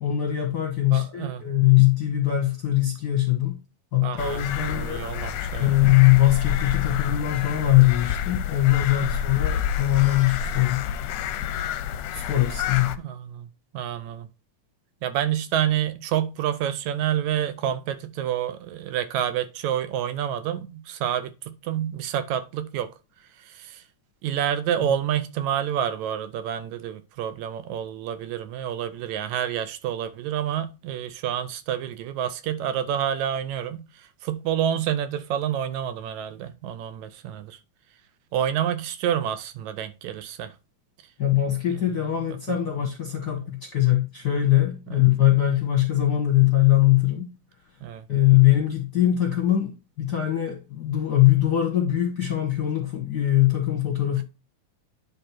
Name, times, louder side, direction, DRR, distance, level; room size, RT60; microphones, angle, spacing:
voice 1, 0.0-3.6 3.9-5.0 5.6-10.8 12.1-12.9 41.2-47.3 48.1-54.2, left 14 dB, 55° left, 1.1 m, -21 dB
voice 2, 0.9-1.4 4.0-5.7 9.0-9.1 13.0-13.5 13.7-14.3 15.0-22.9 23.5-23.8 24.2-33.9 34.2-37.6 38.3-40.5 44.9-45.0 47.8-48.0, right 10 dB, 80° right, 1.9 m, -28 dB
sound 1, 4.2-13.0, left 9 dB, 80° left, 1.7 m, -29 dB
10.0 x 3.4 x 4.5 m
omnidirectional pair, 3.4 m